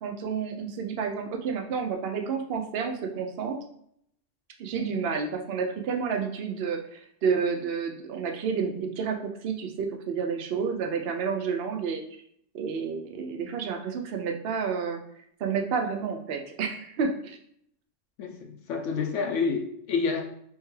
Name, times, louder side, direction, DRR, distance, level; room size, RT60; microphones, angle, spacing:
voice 1, 0.0-3.6 4.6-12.0 12.5-15.0 15.4-17.4, right 6 dB, 60° right, 4 dB, 0.7 m, -30 dB
voice 2, 18.2-20.2, left 5 dB, 75° left, 2 dB, 0.9 m, -28 dB
3.6 x 3.4 x 3.1 m, 0.70 s
omnidirectional pair, 1.3 m